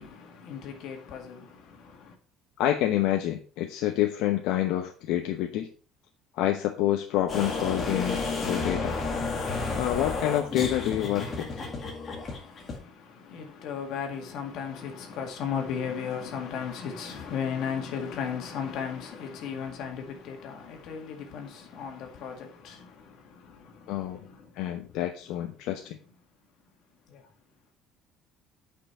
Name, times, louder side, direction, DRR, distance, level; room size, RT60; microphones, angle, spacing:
voice 1, 0.0-2.2 12.3-24.6 27.1-27.3, left 7 dB, 55° left, 2.0 m, -36 dB
voice 2, 2.6-5.7 6.3-9.0 9.8-11.6 23.9-24.2 24.6-26.0, left 13 dB, 75° left, 0.9 m, -28 dB
sound 1, 7.3-12.8, left 3 dB, 25° left, 1.9 m, -31 dB
8.8 x 5.6 x 4.4 m
cardioid pair, 175°, 0 cm